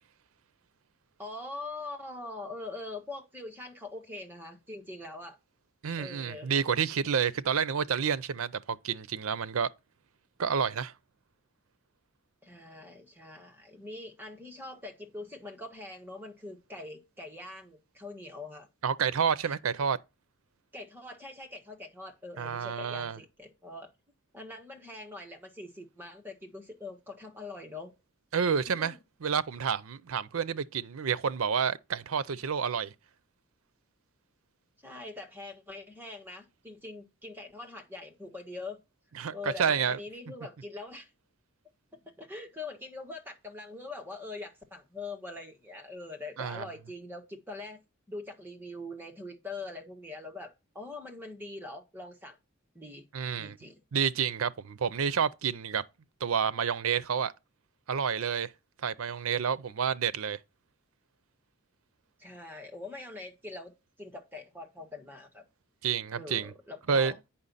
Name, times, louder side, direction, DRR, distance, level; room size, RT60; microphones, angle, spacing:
voice 1, 1.2-5.4 6.0-6.5 12.4-18.7 19.4-19.5 20.7-23.9 24.3-27.9 28.7-29.0 34.8-38.8 39.3-41.1 41.9-47.8 48.1-52.3 52.7-53.0 53.4-53.8 62.2-65.4 66.1-67.2, left 2 dB, 10° right, 1.3 m, -43 dB
voice 2, 5.8-9.7 10.4-10.9 18.8-20.0 22.4-23.2 28.3-32.9 39.2-40.0 46.4-46.7 53.1-53.6 53.9-55.8 56.2-57.3 57.9-58.5 58.8-60.4 65.8-66.5 66.9-67.1, right 7 dB, 75° right, 0.5 m, -29 dB
8.7 x 5.7 x 4.0 m
head